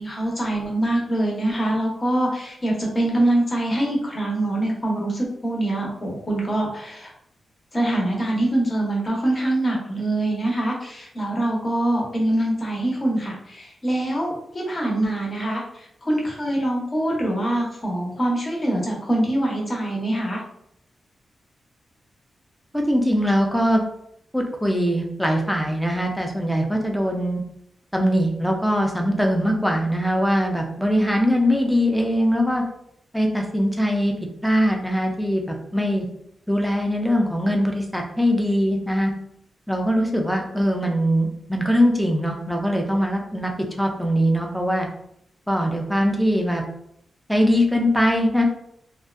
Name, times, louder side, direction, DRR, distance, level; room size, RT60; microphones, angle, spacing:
voice 1, 0.0-7.1 7.7-20.4, right 1 dB, 30° left, -2 dB, 0.7 m, -24 dB
voice 2, 22.7-23.8 24.3-27.4 27.9-32.6 33.1-34.1 34.4-36.0 36.5-39.1 39.7-44.9 45.5-46.6 47.3-48.4, equal, ahead, 1 dB, 0.4 m, -21 dB
2.5 x 2.2 x 2.4 m, 0.73 s
wide cardioid pair, 130°, 0 cm